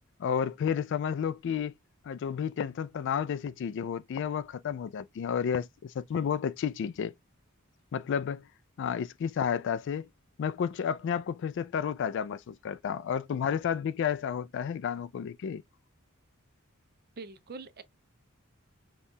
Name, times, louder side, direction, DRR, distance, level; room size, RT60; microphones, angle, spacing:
voice 1, 0.2-1.7 2.1-7.1 7.9-8.4 8.8-10.1 10.4-15.6, left 7 dB, 55° left, 0.3 m, -31 dB
voice 2, 17.2-17.8, right 3 dB, 45° right, 0.6 m, -43 dB
5.3 x 2.3 x 2.6 m
head